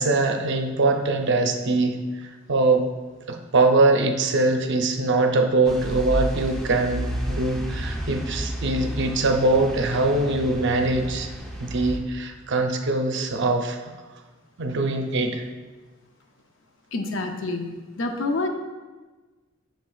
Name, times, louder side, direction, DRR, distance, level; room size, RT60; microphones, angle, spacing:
voice 1, 0.0-2.8 3.3-11.3 11.6-13.9 14.6-15.4, right 2 dB, 60° right, 4 dB, 0.6 m, -22 dB
sound 1, 5.6-12.0, right 1 dB, ahead, 0.7 m, -31 dB
voice 2, 16.9-18.5, left 2 dB, 70° left, 5 dB, 0.6 m, -28 dB
7.8 x 6.4 x 2.3 m, 1.3 s
head